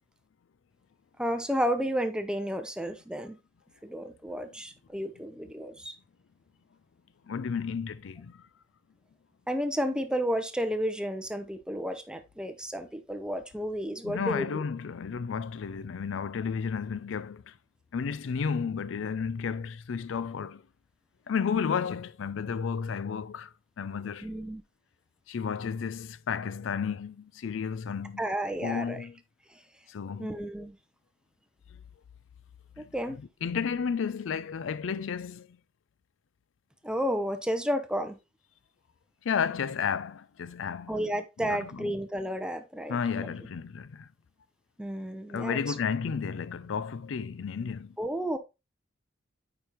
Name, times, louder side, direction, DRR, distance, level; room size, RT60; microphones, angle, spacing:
voice 1, 1.2-3.4 3.8-6.0 9.5-14.6 24.2-24.6 28.2-29.1 30.2-30.8 32.8-33.2 36.8-38.2 40.9-43.3 44.8-45.7 48.0-48.4, equal, 5° right, 0.7 m, -32 dB
voice 2, 7.3-8.4 14.0-17.5 17.9-20.6 21.3-23.5 23.8-24.3 25.3-28.2 28.6-29.2 29.9-30.3 32.8-32.9 33.4-35.5 39.2-40.9 41.4-41.9 42.9-44.1 45.3-48.0, left 6 dB, 75° left, 0.4 m, -32 dB
8.7 x 5.2 x 3.0 m
head